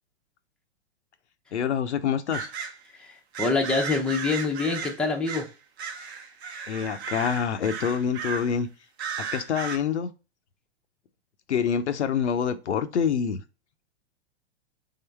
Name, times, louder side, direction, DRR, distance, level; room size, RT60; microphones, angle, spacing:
voice 1, 1.5-2.5 6.7-8.7 9.2-10.1 11.5-13.4, left 7 dB, 85° left, 0.6 m, -26 dB
sound 1, 2.3-2.8 3.3-5.5 5.8-8.6 9.0-9.8, right 6 dB, 70° right, 0.9 m, -35 dB
voice 2, 3.0-5.5, left 3 dB, 5° left, 0.6 m, -26 dB
3.9 x 3.7 x 3.3 m
hypercardioid pair, 120°, 34 cm